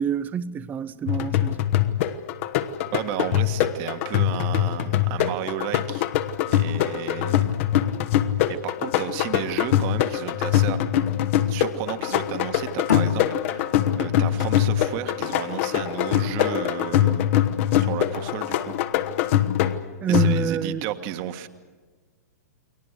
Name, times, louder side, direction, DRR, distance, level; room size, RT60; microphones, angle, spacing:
voice 1, 0.0-1.6 20.0-20.9, right 7 dB, 20° right, 0.7 m, -26 dB
sound 1, 1.1-20.7, left 12 dB, 45° left, 1.2 m, -23 dB
voice 2, 2.9-6.1 6.5-7.5 8.5-10.8 11.5-17.4 17.7-18.8 20.1-21.5, right 12 dB, 40° right, 1.6 m, -33 dB
sound 2, 12.9-16.1, left 7 dB, 70° left, 1.9 m, -30 dB
29.5 x 22.5 x 6.6 m
hypercardioid pair, 115°, 9 cm